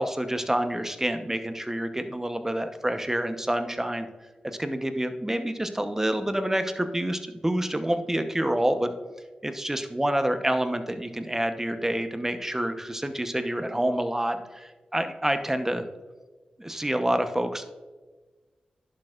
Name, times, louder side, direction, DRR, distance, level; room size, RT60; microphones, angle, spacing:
voice 1, 0.0-4.1 4.6-8.9 9.4-15.9 16.6-17.6, right 1 dB, 15° right, 8 dB, 0.9 m, -27 dB
11.0 x 6.5 x 2.4 m, 1.3 s
cardioid pair, 50°, 3 cm